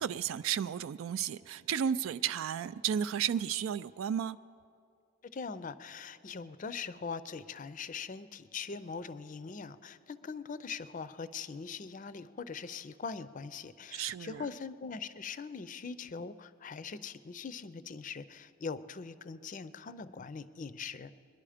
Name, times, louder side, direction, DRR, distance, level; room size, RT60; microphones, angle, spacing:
voice 1, 0.0-4.4 13.9-14.4, right 8 dB, 80° right, 0.3 m, -33 dB
voice 2, 5.2-21.1, left 5 dB, 40° left, 0.4 m, -42 dB
22.5 x 10.5 x 5.0 m
head